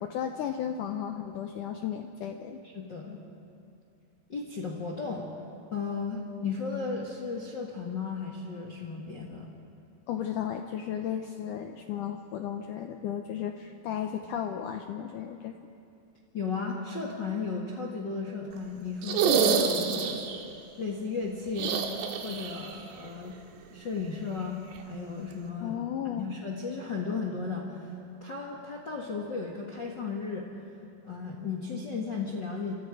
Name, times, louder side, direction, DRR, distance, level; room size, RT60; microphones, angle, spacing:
voice 1, 0.0-2.6 10.1-15.6 25.6-26.3, left 9 dB, 85° left, 5 dB, 1.8 m, -34 dB
voice 2, 2.7-3.2 4.3-5.3 5.7-9.5 16.3-20.4 20.8-21.8 22.2-23.4 23.7-25.8 26.2-27.9 28.2-30.5 31.0-32.7, left 4 dB, 45° left, 0 dB, 1.5 m, -35 dB
sound 1, 19.0-20.4 21.5-22.7 23.0-23.1 24.7-24.8, right 6 dB, 90° right, 3.6 m, -27 dB
28.0 x 26.0 x 4.9 m, 2.5 s
omnidirectional pair, 4.8 m